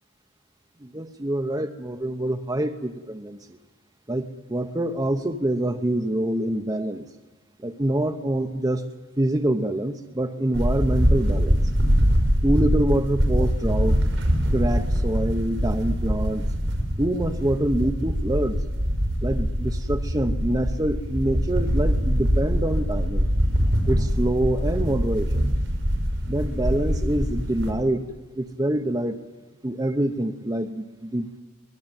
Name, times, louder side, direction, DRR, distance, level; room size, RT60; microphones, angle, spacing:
voice 1, 0.8-3.6 4.1-7.1 7.6-8.9 9.2-11.6 12.4-14.0 14.5-16.5 17.0-18.6 19.2-23.3 23.9-25.5 26.3-28.1 28.4-29.2 29.6-31.3, right 1 dB, 20° right, 6 dB, 0.9 m, -26 dB
sound 1, 10.5-27.7, equal, 65° right, 5.7 m, -23 dB
24.5 x 19.0 x 9.0 m, 1.3 s
head